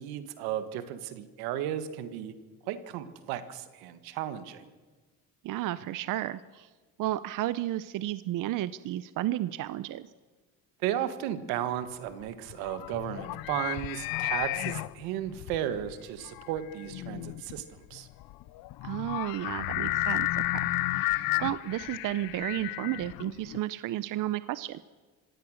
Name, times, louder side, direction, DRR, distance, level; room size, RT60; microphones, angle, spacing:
voice 1, 0.0-2.3 2.6-4.7 10.8-18.1, right 11 dB, 90° right, 11 dB, 1.6 m, -34 dB
voice 2, 5.4-6.7 7.0-10.1 18.8-24.8, right 14 dB, 60° right, 15 dB, 0.7 m, -33 dB
sound 1, 12.1-23.6, left 18 dB, 75° left, 0.7 m, -33 dB
25.5 x 16.5 x 6.4 m, 1.3 s
cardioid pair, 95°, 36 cm